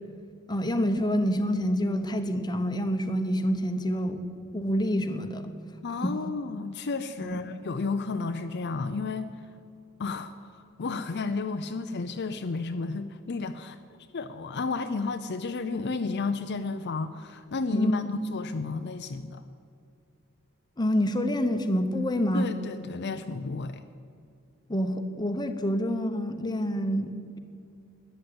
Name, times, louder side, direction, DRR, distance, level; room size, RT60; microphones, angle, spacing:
voice 1, 0.5-4.2 4.5-5.5 6.0-6.1 7.2-7.4 17.7-18.1 20.8-22.5 24.7-27.4, equal, 20° left, 7 dB, 1.0 m, -27 dB
voice 2, 5.8-9.3 10.0-13.8 14.1-19.4 22.3-23.8, left 4 dB, 55° left, 8 dB, 0.6 m, -32 dB
13.0 x 10.5 x 8.7 m, 2.4 s
head